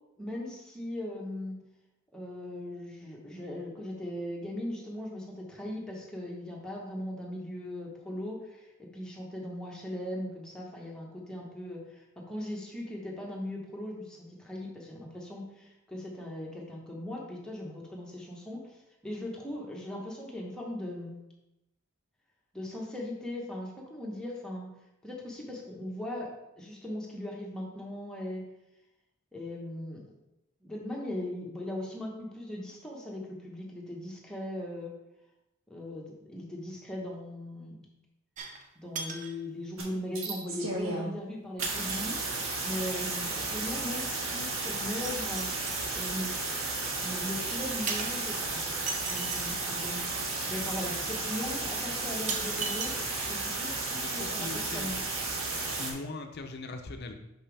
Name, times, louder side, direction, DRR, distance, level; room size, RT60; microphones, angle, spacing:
voice 1, 0.2-1.6 2.1-21.2 22.5-24.7 25.0-26.3 26.6-28.4 29.3-30.0 30.6-34.9 35.7-37.8 38.8-42.2 42.6-45.5 45.9-46.3 47.0-48.6 49.1-50.1 50.5-52.9 53.3-55.0, left 1 dB, 5° left, -3 dB, 1.1 m, -39 dB
sound 1, 38.4-38.7 38.9-39.4 40.3-40.4 41.6-42.5 45.0-45.9 47.9-49.6 50.8-50.9 51.4-51.5 52.3-53.5 53.9-54.0, right 4 dB, 35° right, 0.6 m, -38 dB
sound 2, 39.8-39.9 40.1-41.1 41.6-55.9, right 3 dB, 70° right, 1.4 m, -33 dB
voice 2, 54.0-54.9 55.8-57.1, left 3 dB, 50° left, 6 dB, 0.6 m, -40 dB
6.0 x 5.6 x 3.4 m, 0.91 s
head